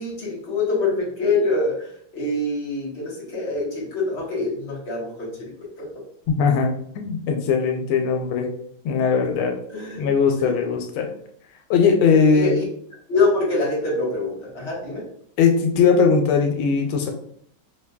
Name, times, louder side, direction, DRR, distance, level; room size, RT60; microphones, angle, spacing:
voice 1, 0.0-5.9 9.7-10.1 10.4-10.7 12.3-12.6 13.1-15.0, left 3 dB, 35° left, -5 dB, 1.3 m, -25 dB
voice 2, 6.4-8.5 8.8-9.6 9.9-11.1 11.7-12.5 15.4-17.1, left 5 dB, 85° left, 3 dB, 1.4 m, -19 dB
4.9 x 2.6 x 2.2 m, 0.64 s
omnidirectional pair, 2.3 m